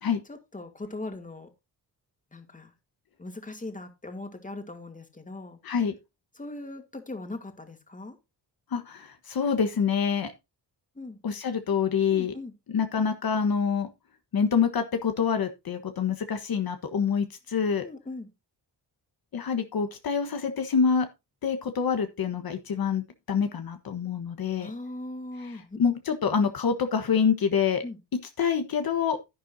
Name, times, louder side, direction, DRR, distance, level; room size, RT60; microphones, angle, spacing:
voice 1, 0.3-1.5 2.3-2.7 3.2-5.6 6.4-8.2 11.0-11.2 12.1-12.5 17.8-18.3 24.6-25.8 27.8-28.0, left 2 dB, 20° left, 2.5 m, -39 dB
voice 2, 5.6-5.9 8.7-10.3 11.2-12.3 12.7-13.9 14.3-17.8 19.3-21.1 21.4-24.7 25.8-27.8 28.4-29.2, left 6 dB, 60° left, 1.4 m, -26 dB
11.0 x 10.0 x 2.7 m
cardioid pair, 85°, 40 cm